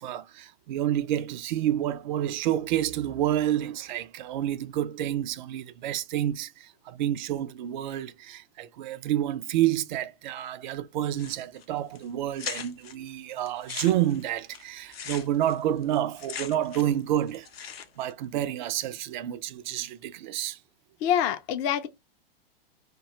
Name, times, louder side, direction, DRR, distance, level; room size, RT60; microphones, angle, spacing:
voice 1, 0.0-17.5 18.0-20.6, right 12 dB, 50° right, 0.4 m, -29 dB
sound 1, 11.2-11.6 12.0-12.1 12.4-12.9 13.5-17.0 17.3-18.1, left 7 dB, 80° left, 0.6 m, -39 dB
voice 2, 21.0-21.9, left 10 dB, 30° left, 0.4 m, -25 dB
2.2 x 2.2 x 2.8 m
hypercardioid pair, 105°, 30 cm